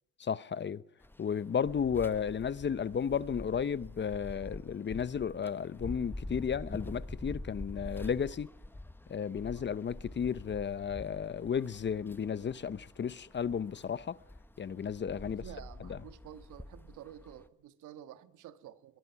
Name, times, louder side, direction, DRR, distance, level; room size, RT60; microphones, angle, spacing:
voice 1, 0.2-0.8 1.2-8.5 9.1-14.2 14.6-15.4 15.9-16.0, left 7 dB, 35° left, 0.8 m, -33 dB
sound 1, 1.0-17.5, left 1 dB, 5° left, 1.1 m, -46 dB
voice 2, 15.2-19.0, right 11 dB, 80° right, 1.7 m, -50 dB
22.5 x 22.0 x 5.9 m
cardioid pair, 90°, 30 cm